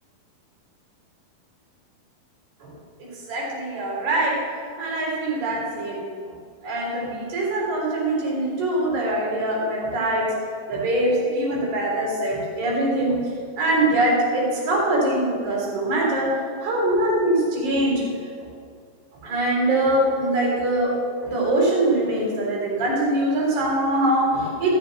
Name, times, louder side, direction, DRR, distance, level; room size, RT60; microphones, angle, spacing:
voice 1, 3.0-4.4 4.8-6.0 6.6-10.3 10.7-13.2 13.6-16.3 16.6-18.0 19.2-20.9 21.2-24.7, right 1 dB, 50° right, -4 dB, 4.9 m, -23 dB
15.0 x 6.8 x 5.8 m, 2.2 s
omnidirectional pair, 4.7 m